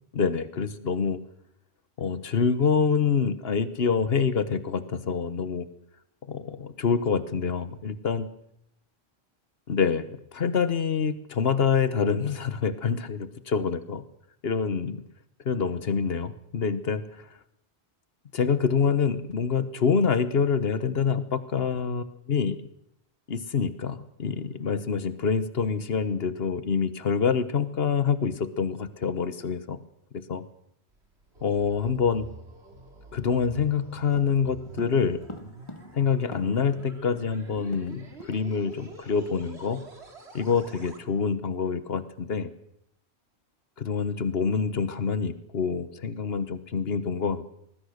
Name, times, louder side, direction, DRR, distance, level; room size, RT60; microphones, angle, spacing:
voice 1, 0.1-1.2 2.0-5.7 6.3-8.3 9.7-14.0 14.4-15.0 15.4-17.3 18.3-22.6 23.3-29.8 30.3-30.4 31.4-32.3 33.1-35.2 35.9-39.8 40.3-42.5 43.8-47.5, left 6 dB, 65° left, 13 dB, 1.4 m, -26 dB
sound 1, 30.9-41.0, right 2 dB, 80° right, 2.8 m, -48 dB
sound 2, 34.1-36.8 37.1-37.2 37.4-38.4 38.7-38.9 39.3-39.5, left 2 dB, 30° left, 1.2 m, -45 dB
24.5 x 20.0 x 6.5 m, 0.79 s
omnidirectional pair, 1.1 m